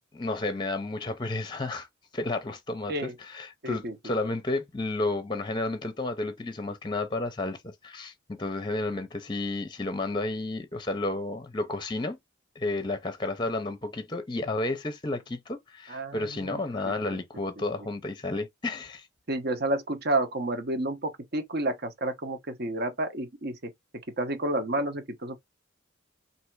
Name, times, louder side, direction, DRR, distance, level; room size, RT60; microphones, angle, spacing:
voice 1, 0.1-1.9 2.1-12.2 12.6-19.1, left 2 dB, 25° left, 0.6 m, -32 dB
voice 2, 3.6-4.0 15.9-16.6 16.8-17.0 19.3-23.6 24.2-25.4, right 1 dB, 55° right, 1.0 m, -30 dB
3.4 x 2.8 x 4.6 m
head